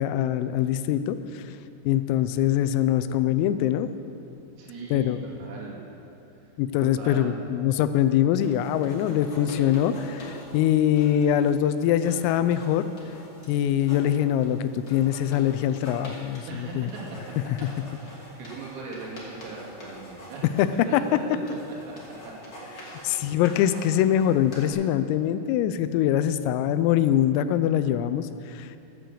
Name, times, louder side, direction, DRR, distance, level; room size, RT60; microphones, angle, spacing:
voice 1, 0.0-1.4 1.9-3.9 4.9-5.2 6.6-12.9 13.5-16.9 20.6-21.0 22.8-28.8, left 11 dB, 85° left, 11 dB, 3.2 m, -23 dB
voice 2, 4.6-5.8 6.8-7.4 16.5-21.2 21.9-22.0 22.2-22.3 22.7-23.3, right 3 dB, 80° right, -3 dB, 4.9 m, -40 dB
sound 1, 8.4-24.7, equal, 30° left, 1.7 m, -45 dB
12.5 x 9.3 x 7.5 m, 2.8 s
omnidirectional pair, 5.9 m